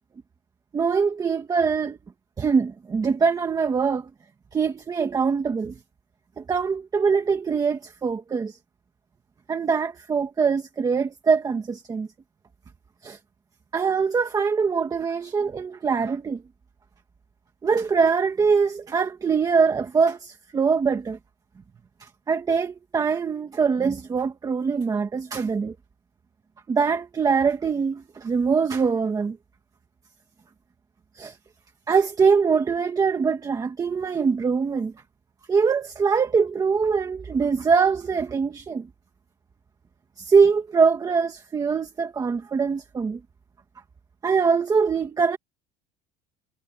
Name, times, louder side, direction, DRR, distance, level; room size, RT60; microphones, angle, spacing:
voice 1, 0.7-2.0 2.4-4.1 4.5-5.7 6.4-8.6 9.5-12.1 13.0-13.2 13.7-16.4 17.6-21.2 22.0-25.7 26.7-29.4 31.1-31.4 31.9-34.9 35.5-38.9 40.2-43.2 44.2-45.4, right 5 dB, 15° right, 1.6 m, -23 dB
cardioid pair, 175°, 21 cm